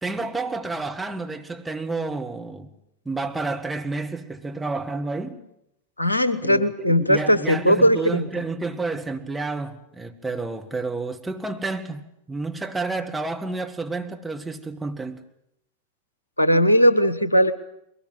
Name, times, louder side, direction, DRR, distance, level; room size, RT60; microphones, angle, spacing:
voice 1, 0.0-2.7 3.1-5.4 6.4-6.7 7.0-15.2, right 3 dB, 5° right, 1.9 m, -30 dB
voice 2, 6.0-8.3 16.4-17.5, equal, 80° left, 1.2 m, -18 dB
22.0 x 18.5 x 9.3 m
figure-of-eight pair, 90°, 0 cm